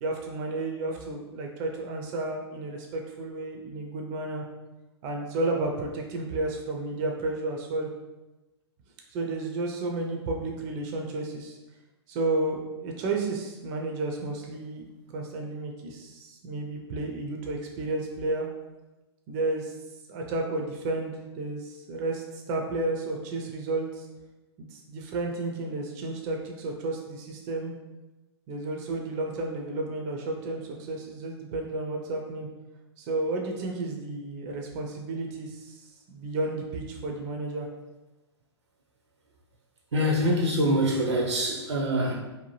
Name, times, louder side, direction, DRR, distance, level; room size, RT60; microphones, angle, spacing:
voice 1, 0.0-4.4 5.0-7.9 9.1-11.6 12.1-14.8 15.1-18.5 19.3-19.7 20.1-24.1 24.6-27.7 28.5-32.5 33.0-37.7, right 2 dB, 35° right, 1 dB, 0.4 m, -32 dB
voice 2, 39.9-42.2, equal, 80° right, 0 dB, 0.7 m, -24 dB
2.7 x 2.1 x 3.1 m, 1.1 s
hypercardioid pair, 115°, 14 cm